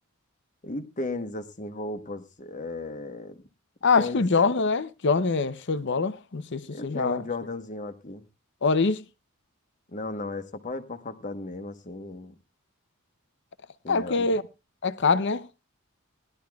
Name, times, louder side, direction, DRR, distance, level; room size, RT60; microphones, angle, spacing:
voice 1, 0.6-3.4 4.0-4.2 6.7-8.2 9.9-12.4 13.8-14.3, left 2 dB, 35° left, 1.1 m, -35 dB
voice 2, 3.8-7.2 8.6-9.0 13.9-14.4 14.8-15.5, left 4 dB, 55° left, 0.7 m, -24 dB
19.5 x 12.0 x 2.3 m
head